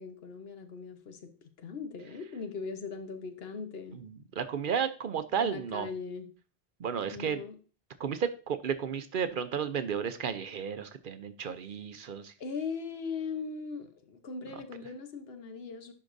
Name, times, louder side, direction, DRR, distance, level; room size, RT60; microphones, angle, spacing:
voice 1, 0.0-1.3 1.6-4.0 5.4-6.3 7.1-7.6 12.4-15.9, left 5 dB, 70° left, 8 dB, 1.1 m, -39 dB
voice 2, 3.9-5.9 6.8-7.4 8.0-12.3, right 7 dB, 60° right, 10 dB, 0.7 m, -33 dB
11.0 x 4.7 x 2.6 m, 0.36 s
omnidirectional pair, 1.1 m